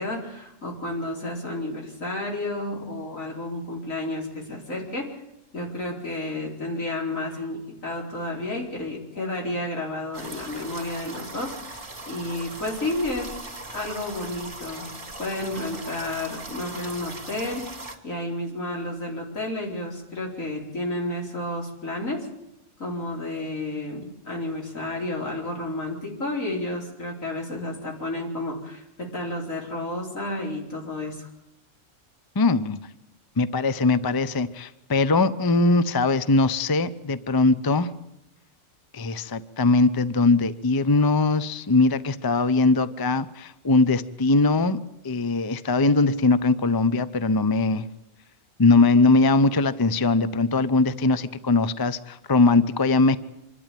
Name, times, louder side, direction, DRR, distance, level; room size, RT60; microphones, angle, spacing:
voice 1, 0.0-5.1 5.5-13.3 13.7-14.9 15.2-17.6 18.0-22.3 22.8-31.3, left 1 dB, 80° left, -1 dB, 5.0 m, -31 dB
sound 1, 10.1-18.0, right 2 dB, 40° right, 2.9 m, -39 dB
voice 2, 32.4-32.8 33.4-37.9 38.9-44.8 45.0-47.9 48.6-53.2, left 3 dB, 25° left, 14 dB, 0.6 m, -21 dB
26.0 x 12.0 x 9.1 m, 0.89 s
omnidirectional pair, 1.4 m